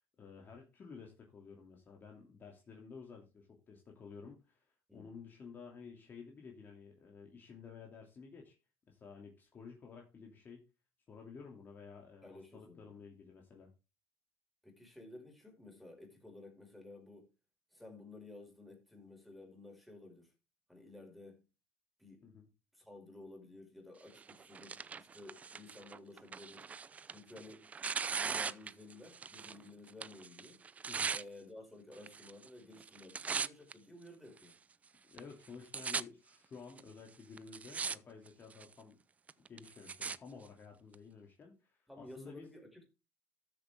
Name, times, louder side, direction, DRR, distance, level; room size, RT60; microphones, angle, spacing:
voice 1, 0.2-4.7 4.9-8.5 8.9-10.6 11.1-13.7 22.2-22.5 27.3-27.4 30.9-31.1 35.1-39.0 39.5-42.5, left 5 dB, 30° left, 2.8 m, -53 dB
voice 2, 12.2-12.9 14.6-17.3 17.7-20.3 20.7-21.4 22.0-22.3 22.7-26.7 27.1-27.7 28.0-30.6 31.1-34.6 41.9-42.8, left 2 dB, ahead, 5.5 m, -54 dB
Tearing, 24.2-29.6 29.9-31.2 32.0-32.5 32.8-33.7 34.4-34.5 35.2-35.3 35.5-36.0 36.8-36.9 37.4-38.0 38.3-38.7 39.3-40.2 40.9-41.0, right 5 dB, 20° right, 0.5 m, -39 dB
13.0 x 7.7 x 3.6 m
cardioid pair, 125°, 6 cm